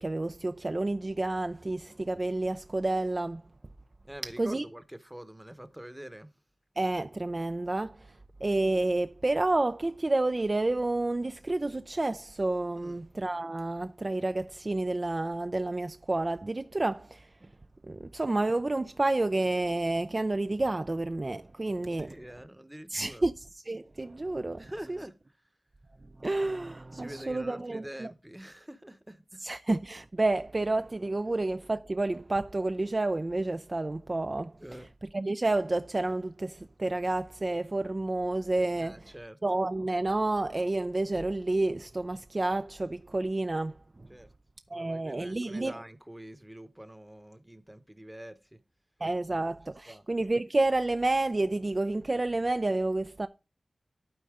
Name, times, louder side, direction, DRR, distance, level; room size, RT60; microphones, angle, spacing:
voice 1, 0.0-3.4 4.4-4.6 6.8-8.1 8.4-17.3 17.9-22.1 22.9-24.6 24.9-25.0 26.2-28.1 29.4-34.6 35.1-39.0 39.4-43.7 44.7-45.8 49.0-53.3, right 2 dB, 40° right, 0.4 m, -30 dB
voice 2, 4.0-6.3 12.8-13.0 21.9-23.3 24.6-25.2 26.9-29.4 34.6-34.9 38.8-39.4 44.1-44.3 44.7-48.6 49.3-49.6 49.9-50.1, right 1 dB, 10° right, 0.9 m, -45 dB
12.0 x 4.2 x 3.6 m
cardioid pair, 45°, 0 cm